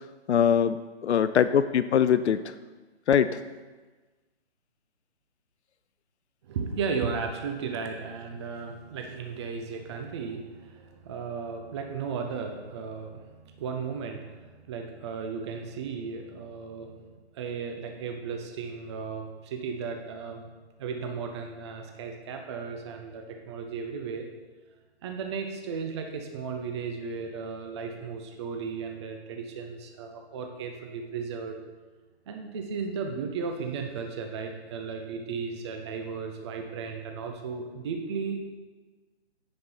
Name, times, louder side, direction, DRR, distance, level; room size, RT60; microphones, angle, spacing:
voice 1, 0.3-0.8 1.0-2.5 3.1-3.3, left 8 dB, 80° left, 12 dB, 0.5 m, -22 dB
voice 2, 6.5-13.2 13.6-16.9 17.4-20.4 20.8-24.3 25.0-31.6 32.3-38.4, right 5 dB, 25° right, 4 dB, 0.6 m, -35 dB
9.4 x 5.3 x 4.4 m, 1.3 s
figure-of-eight pair, 140°, 33 cm